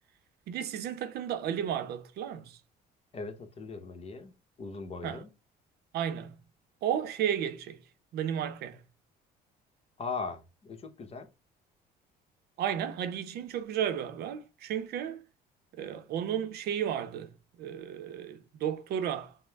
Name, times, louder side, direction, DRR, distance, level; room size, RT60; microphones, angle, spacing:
voice 1, 0.5-2.6 5.0-5.2 5.9-6.4 6.8-7.8 8.1-8.8 12.6-15.2 15.8-17.3 17.6-19.4, right 9 dB, 70° right, 0.6 m, -33 dB
voice 2, 3.1-4.3 4.6-5.3 10.0-11.3, left 4 dB, 35° left, 0.9 m, -39 dB
5.2 x 2.1 x 3.4 m
cardioid pair, 110°, 17 cm